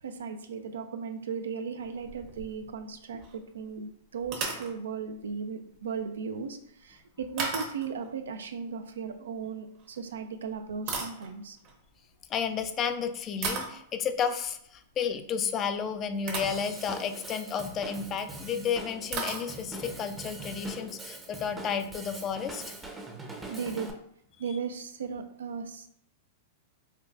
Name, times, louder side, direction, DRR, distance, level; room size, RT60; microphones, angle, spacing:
voice 1, 0.0-11.6 23.5-23.9 24.4-25.9, right 6 dB, 85° right, 7 dB, 0.4 m, -36 dB
sound 1, 1.8-2.9 3.2-3.4 4.2-4.7 7.4-8.1 9.7-9.9 10.5-11.7 12.7-12.9 13.4-13.8 15.7-15.8 16.3-16.7 17.1-17.4 18.4-18.5 18.7-18.8 19.1-19.9, right 4 dB, 45° right, 0.9 m, -36 dB
voice 2, 12.3-22.6, left 7 dB, 30° left, 9 dB, 0.3 m, -32 dB
Drum kit / Drum, 16.4-23.9, right 2 dB, 10° right, 0.6 m, -42 dB
4.5 x 2.3 x 2.4 m, 0.68 s
hypercardioid pair, 115°, 0 cm